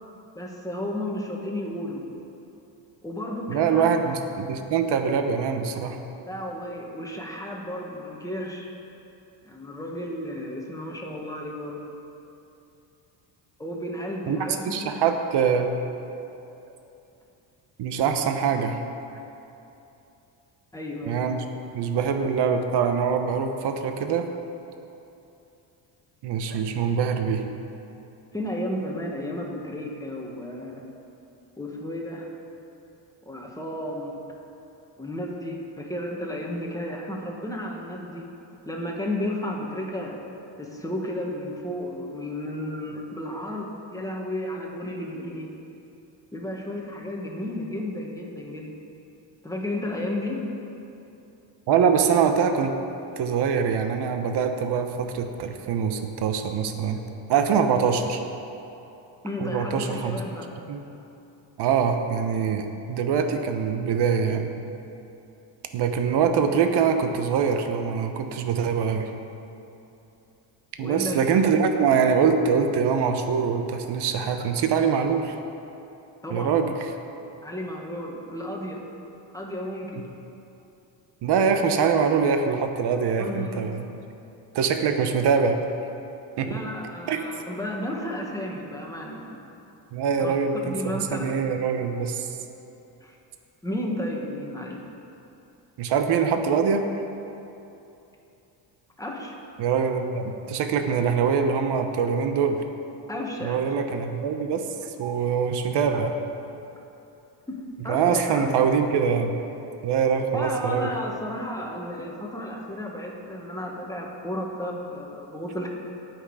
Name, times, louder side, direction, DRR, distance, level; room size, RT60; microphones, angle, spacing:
voice 1, 0.3-2.0 3.0-3.9 6.2-8.7 9.4-11.8 13.6-15.0 20.7-21.3 28.3-30.8 31.6-32.3 33.2-34.2 35.0-38.2 38.6-40.2 40.6-45.5 46.3-48.7 49.4-50.4 59.2-60.5 70.8-71.4 76.2-76.6 77.4-78.8 79.3-80.1 83.2-83.7 86.5-89.4 90.2-90.3 90.6-91.4 93.0-93.2 93.6-94.8 99.0-99.3 103.1-103.6 107.5-108.5 110.3-115.7, left 1 dB, 5° left, -1 dB, 1.6 m, -33 dB
voice 2, 3.5-6.0 14.3-14.4 14.6-15.7 17.8-18.8 21.1-21.4 21.7-24.3 26.2-27.4 51.7-52.7 53.1-57.0 57.3-58.2 59.4-60.2 60.7-60.8 61.6-64.5 65.7-69.1 70.8-75.3 76.3-76.8 81.2-83.9 84.5-85.6 86.4-86.6 87.1-87.2 89.9-90.7 91.2-92.3 95.8-96.8 99.6-102.6 103.4-106.2 107.9-109.4 109.8-110.9, right 6 dB, 60° right, 6 dB, 1.0 m, -23 dB
18.5 x 6.4 x 4.9 m, 2.8 s
cardioid pair, 120°, 46 cm